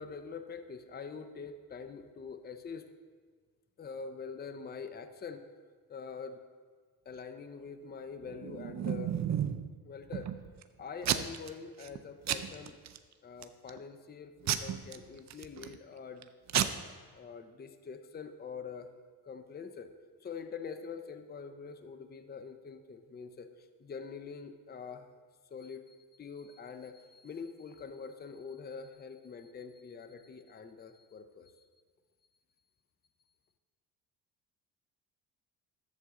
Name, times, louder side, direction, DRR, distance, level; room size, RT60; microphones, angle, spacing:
voice 1, 0.0-2.9 3.8-5.4 5.9-6.4 7.1-9.2 9.8-10.3 10.8-12.8 13.2-16.3 17.1-18.9 19.2-19.9 20.2-25.1 25.5-31.6, left 5 dB, 25° left, 8 dB, 0.6 m, -45 dB
Packing tape duct tape / Tearing, 8.3-9.7 10.1-10.6 11.0-11.5 11.8-12.0 12.3-13.0 13.4-13.8 14.5-15.8 16.2-16.3 16.5-16.6, right 10 dB, 45° right, 0.6 m, -32 dB
11.0 x 7.3 x 3.7 m, 1.5 s
cardioid pair, 90°, 40 cm